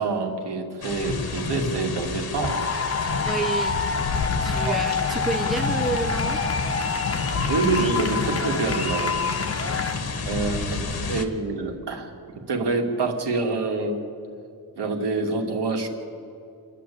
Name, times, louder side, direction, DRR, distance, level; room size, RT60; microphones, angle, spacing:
voice 1, 0.0-2.6 4.6-4.8 7.5-9.1 10.2-12.1 12.5-14.0 14.8-15.9, right 3 dB, 75° right, 2 dB, 2.4 m, -26 dB
sound 1, 0.8-11.2, left 4 dB, 65° left, 1.6 m, -29 dB
sound 2, 2.4-10.0, left 4 dB, 35° left, 1.3 m, -27 dB
voice 2, 3.3-3.8 4.4-6.4 9.6-10.1, right 3 dB, ahead, 5 dB, 0.7 m, -30 dB
28.5 x 10.5 x 8.5 m, 2.6 s
wide cardioid pair, 175°, 41 cm